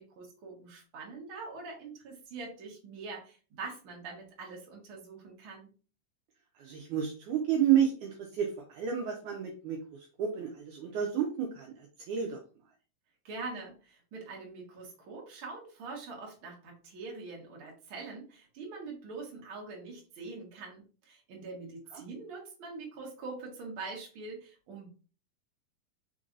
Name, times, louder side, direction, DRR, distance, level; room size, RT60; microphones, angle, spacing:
voice 1, 0.0-5.7 13.2-24.9, right 3 dB, 50° right, -1 dB, 1.7 m, -44 dB
voice 2, 6.6-9.8 10.2-11.7 12.1-12.4 21.9-22.0, right 9 dB, 80° right, 1 dB, 1.8 m, -30 dB
5.3 x 3.8 x 2.6 m, 0.36 s
omnidirectional pair, 4.2 m